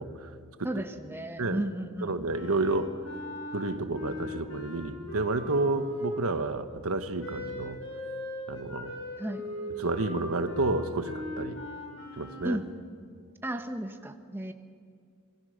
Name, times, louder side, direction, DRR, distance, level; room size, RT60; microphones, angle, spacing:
voice 1, 0.0-0.7 1.4-1.6 2.0-2.9 3.5-7.8 8.5-8.9 9.8-11.6 12.2-12.6, right 2 dB, 85° right, 9 dB, 1.3 m, -30 dB
voice 2, 0.6-2.2 9.2-9.4 12.4-12.7 13.4-14.5, right 1 dB, 10° right, 6 dB, 1.2 m, -34 dB
Wind instrument woodwind instrument, 2.3-6.5 7.2-12.6, left 1 dB, 65° left, 5.5 m, -39 dB
27.0 x 22.0 x 6.6 m, 2.2 s
head